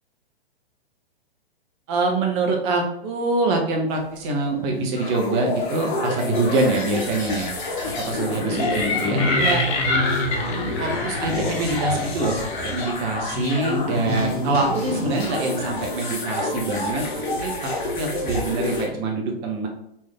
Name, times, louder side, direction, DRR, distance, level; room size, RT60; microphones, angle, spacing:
voice 1, 1.9-7.5 7.8-9.6 10.8-19.7, right 3 dB, 25° right, 1 dB, 0.7 m, -25 dB
sound 1, 3.9-18.9, left 2 dB, 50° left, 0.9 m, -28 dB
sound 2, 8.5-13.3, left 3 dB, 30° left, 0.6 m, -27 dB
3.2 x 2.6 x 3.5 m, 0.79 s
figure-of-eight pair, 110°, 31 cm